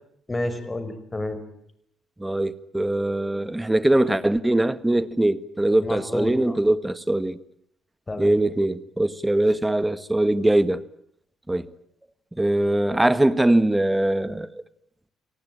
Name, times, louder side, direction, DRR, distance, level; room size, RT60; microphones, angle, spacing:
voice 1, 0.3-1.4 5.8-6.6 8.1-8.4, left 2 dB, 25° left, 5.6 m, -30 dB
voice 2, 2.2-7.4 8.2-10.8 11.5-11.7 12.3-14.5, right 1 dB, 10° right, 1.7 m, -22 dB
29.5 x 19.0 x 8.9 m
hypercardioid pair, 50°, 0 cm